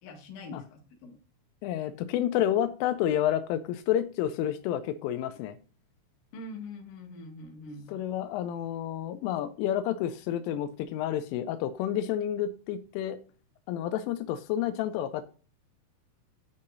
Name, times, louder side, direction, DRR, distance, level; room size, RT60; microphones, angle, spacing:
voice 1, 0.0-1.2 6.3-7.9, left 2 dB, 55° left, 2 dB, 3.0 m, -43 dB
voice 2, 1.6-5.6 7.9-13.2 13.7-15.2, left 11 dB, 85° left, 11 dB, 3.1 m, -30 dB
12.5 x 5.7 x 2.6 m, 0.37 s
omnidirectional pair, 5.6 m